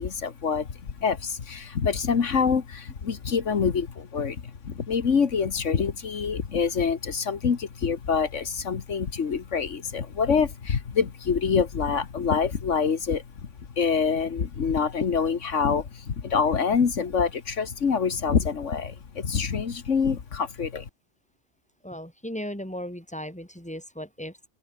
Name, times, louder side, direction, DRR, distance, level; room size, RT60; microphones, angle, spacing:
voice 1, 0.0-13.5 13.8-20.9, left 6 dB, 80° left, 1.9 m, -26 dB
voice 2, 21.8-24.5, equal, 5° left, 5.1 m, -36 dB
open air
omnidirectional pair, 1.3 m